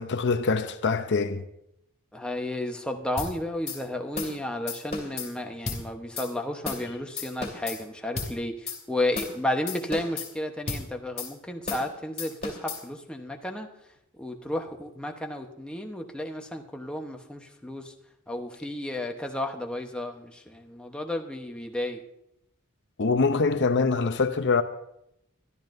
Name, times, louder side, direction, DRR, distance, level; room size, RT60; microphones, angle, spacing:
voice 1, 0.0-1.5 23.0-24.6, left 4 dB, 55° left, 0.7 m, -24 dB
voice 2, 2.1-13.7 14.2-17.9 18.3-22.0, left 1 dB, 5° left, 1.0 m, -32 dB
sound 1, 3.2-3.3 3.7-3.8 4.2-4.4 4.7-5.3 5.7-5.8 6.2-6.3 6.7-6.9 7.2-7.8 8.2-8.3 8.7-8.8 9.2-9.4 9.7-10.3 10.7-10.8 11.2-11.3 11.7-11.9 12.2-12.8, left 4 dB, 35° left, 2.5 m, -33 dB
22.5 x 12.5 x 2.6 m
head